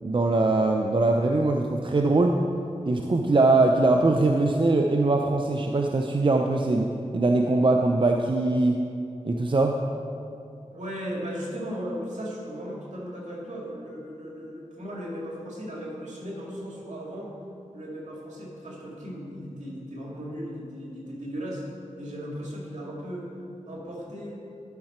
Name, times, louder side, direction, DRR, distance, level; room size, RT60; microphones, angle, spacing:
voice 1, 0.0-2.4 2.9-8.8 9.2-9.8, right 2 dB, 40° right, 3 dB, 0.6 m, -22 dB
voice 2, 10.7-17.3 17.7-21.6 22.0-23.3 23.7-24.4, equal, 70° right, -3 dB, 2.3 m, -36 dB
12.0 x 5.8 x 4.4 m, 2.5 s
cardioid pair, 40°, 13 cm